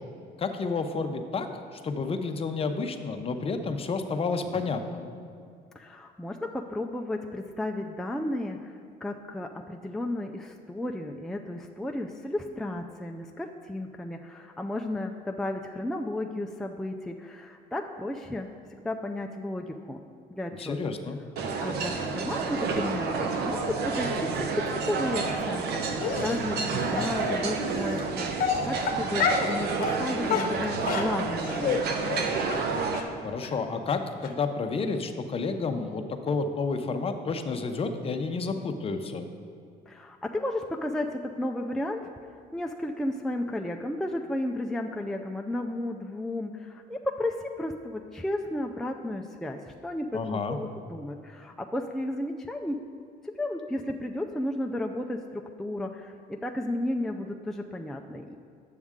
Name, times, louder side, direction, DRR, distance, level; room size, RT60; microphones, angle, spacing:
voice 1, 0.4-1.5 1.7-5.1 20.6-21.2 33.2-39.3 50.1-50.6, left 4 dB, 35° left, 7 dB, 0.7 m, -30 dB
voice 2, 5.8-8.7 9.0-20.0 20.3-20.9 21.6-31.8 39.9-42.1 42.5-52.8 53.2-55.2 55.6-58.4, left 1 dB, ahead, 2 dB, 0.3 m, -33 dB
sound 1, 21.4-33.0, right 4 dB, 70° right, 0.8 m, -30 dB
Dog, 26.0-26.4 27.0-27.1 27.9-28.0 28.4-29.5 29.8-30.0 30.3-31.8 32.1-32.2 32.5-32.6 32.9-33.0 33.4-33.5 33.9-34.0 34.2-34.3, left 7 dB, 55° left, 0.9 m, -28 dB
9.4 x 7.3 x 3.6 m, 2.3 s
cardioid pair, 110°, 17 cm